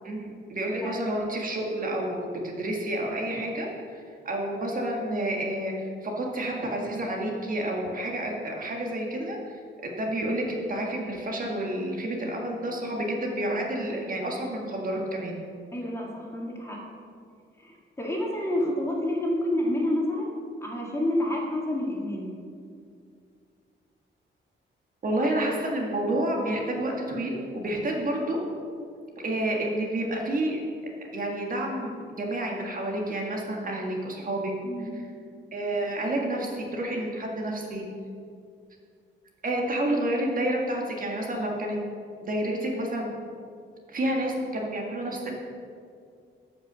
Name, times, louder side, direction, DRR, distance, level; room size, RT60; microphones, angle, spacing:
voice 1, 0.0-9.4 9.8-15.4 25.0-28.4 29.2-30.6 31.1-34.5 35.5-37.8 39.4-41.8 42.2-43.1 43.9-45.3, right 1 dB, 45° right, 0 dB, 1.7 m, -29 dB
voice 2, 0.8-1.1 15.7-16.8 17.6-20.3 20.6-22.3 34.6-35.0 36.3-36.4, left 1 dB, 15° left, -2 dB, 2.0 m, -29 dB
14.0 x 5.8 x 6.2 m, 2.3 s
wide cardioid pair, 150°, 20 cm